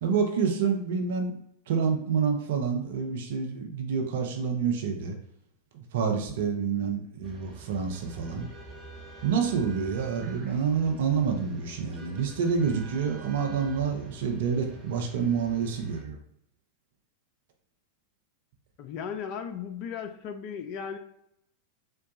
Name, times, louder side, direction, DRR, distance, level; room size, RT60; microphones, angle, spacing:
voice 1, 0.0-1.4 1.7-5.1 5.7-8.5 9.2-16.2, right 6 dB, 55° right, 3 dB, 0.6 m, -28 dB
sound 1, 7.2-16.0, right 2 dB, 20° right, 1.0 m, -47 dB
voice 2, 18.8-21.0, left 7 dB, 40° left, 8 dB, 0.4 m, -36 dB
3.8 x 2.2 x 4.0 m, 0.74 s
figure-of-eight pair, 90°, 0 cm